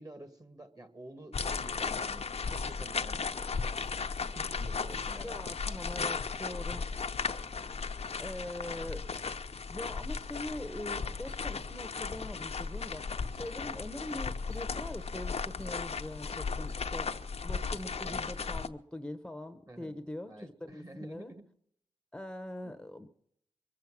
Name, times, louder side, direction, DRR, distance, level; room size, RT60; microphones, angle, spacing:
voice 1, 0.0-3.3 4.3-5.6 13.8-14.0 19.7-20.0 20.3-21.5 22.6-22.7, right 1 dB, 30° right, 8 dB, 2.0 m, -50 dB
sound 1, 1.3-18.7, left 5 dB, 65° left, 0.8 m, -36 dB
voice 2, 5.2-6.9 8.2-9.0 9.7-17.1 17.4-21.3 22.1-23.1, left 1 dB, 5° left, 9 dB, 1.0 m, -42 dB
22.5 x 7.6 x 7.4 m, 0.68 s
wide cardioid pair, 65°, 11 cm